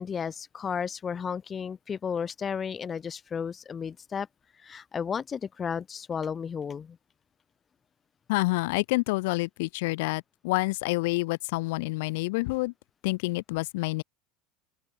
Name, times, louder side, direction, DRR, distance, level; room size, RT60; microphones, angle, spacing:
voice 1, 0.0-4.3 4.6-7.0, left 6 dB, 20° left, 4.8 m, -33 dB
voice 2, 8.3-12.7 13.0-14.0, left 23 dB, 80° left, 4.6 m, -28 dB
open air
cardioid pair, 165°, 0 cm